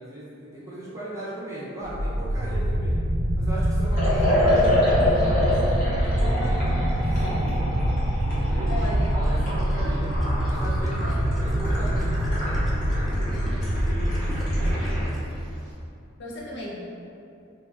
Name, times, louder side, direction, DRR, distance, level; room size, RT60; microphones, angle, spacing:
voice 1, 0.0-3.0 3.3-7.8 8.3-8.8 9.1-10.1 10.4-13.3 13.7-15.0, right 1 dB, 15° right, -9 dB, 0.7 m, -38 dB
sound 1, 1.8-15.0, equal, 80° right, 0.4 m, -25 dB
Liquid, 3.9-15.1, left 1 dB, 45° left, 0.9 m, -28 dB
voice 2, 4.0-4.4 8.7-9.1 11.0-11.4 13.3-13.9 16.2-16.8, left 2 dB, 65° left, -5 dB, 0.5 m, -36 dB
Gurgling, 8.3-15.3, equal, ahead, 0.3 m, -39 dB
2.6 x 2.3 x 3.4 m, 2.5 s
head